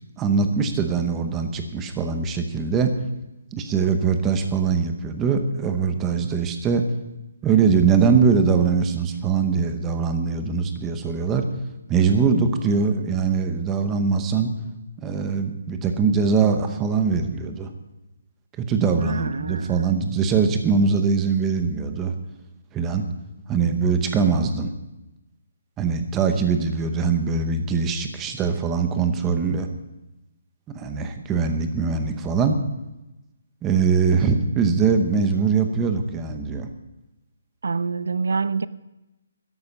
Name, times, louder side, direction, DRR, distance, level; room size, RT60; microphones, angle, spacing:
voice 1, 0.2-2.9 3.5-6.8 7.4-11.5 11.9-14.5 15.0-17.7 18.6-22.1 22.7-23.0 23.5-24.7 25.8-29.7 30.7-32.6 33.6-36.7, right 5 dB, 10° right, 7 dB, 0.8 m, -22 dB
voice 2, 19.0-20.0 37.6-38.7, right 4 dB, 85° right, 17 dB, 0.6 m, -26 dB
13.0 x 11.0 x 5.4 m, 0.97 s
hypercardioid pair, 175°, 0 cm